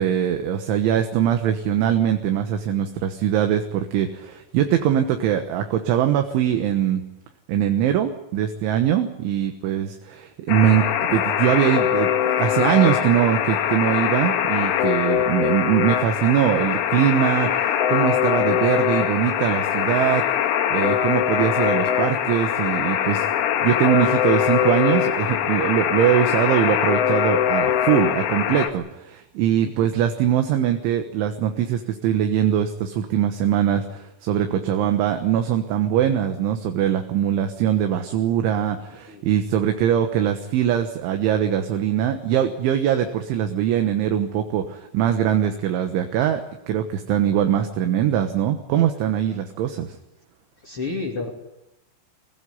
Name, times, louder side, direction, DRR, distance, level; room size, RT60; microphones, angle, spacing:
voice 1, 0.0-7.0 7.5-23.3 23.6-46.4 46.7-50.0, right 10 dB, 75° right, 6 dB, 3.6 m, -22 dB
Alarm, 10.5-28.7, left 9 dB, 75° left, 4.0 m, -22 dB
voice 2, 50.6-51.3, left 3 dB, 35° left, -1 dB, 3.0 m, -30 dB
24.0 x 16.5 x 9.7 m, 0.91 s
omnidirectional pair, 5.7 m